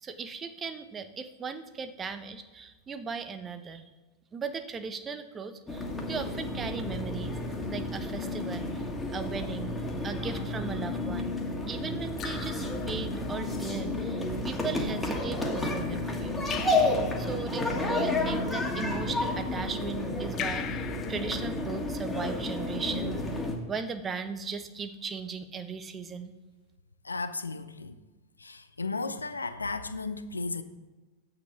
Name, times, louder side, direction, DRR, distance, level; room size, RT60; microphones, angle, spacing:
voice 1, 0.0-3.8 4.3-7.4 7.7-11.4 11.7-16.4 16.7-23.2 23.7-26.3, right 5 dB, 20° right, 0.8 m, -38 dB
sound 1, 5.7-23.6, left 2 dB, 10° left, 1.7 m, -31 dB
Raindrop / Drip, 10.4-10.8 12.2-13.5 16.5-17.6 20.4-22.1, left 9 dB, 30° left, 0.8 m, -41 dB
voice 2, 27.0-28.0 28.4-30.6, left 3 dB, 80° left, 0.5 m, -34 dB
9.6 x 8.0 x 4.7 m
figure-of-eight pair, 90°, 0 cm